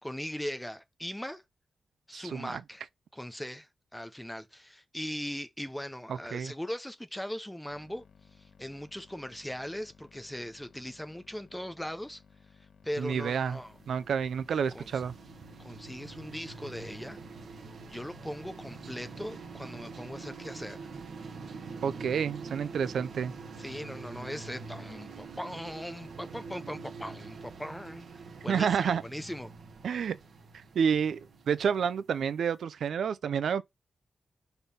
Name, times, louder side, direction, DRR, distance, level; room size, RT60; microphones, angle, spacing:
voice 1, 0.0-1.4 2.1-2.8 3.1-8.0 8.4-12.2 12.8-13.7 14.7-15.0 15.6-17.2 17.9-20.9 23.6-28.1 28.4-29.5, equal, 5° left, 0.6 m, -39 dB
voice 2, 2.1-2.6 6.3-6.5 13.0-13.6 13.9-15.1 21.8-23.3 28.5-29.0 29.8-30.2 30.5-31.2 31.5-33.6, right 7 dB, 80° right, 0.5 m, -29 dB
sound 1, 7.7-23.7, left 6 dB, 70° left, 1.2 m, -59 dB
sound 2, 13.2-32.2, right 4 dB, 60° right, 1.2 m, -45 dB
5.2 x 4.4 x 5.3 m
wide cardioid pair, 165°, 0 cm